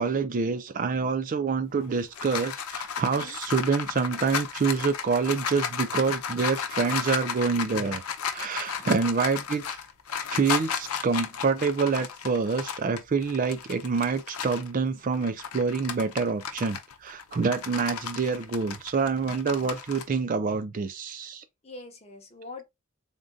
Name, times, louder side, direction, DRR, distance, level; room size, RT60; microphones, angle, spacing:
voice 1, 0.0-8.0 8.3-9.8 10.3-21.4, right 5 dB, 40° right, 0.4 m, -27 dB
sound 1, 1.7-14.7 15.1-20.0, left 7 dB, 90° left, 0.6 m, -34 dB
voice 2, 3.1-3.4 8.8-9.5 21.6-22.6, left 2 dB, 30° left, 0.9 m, -45 dB
3.6 x 2.5 x 3.8 m
head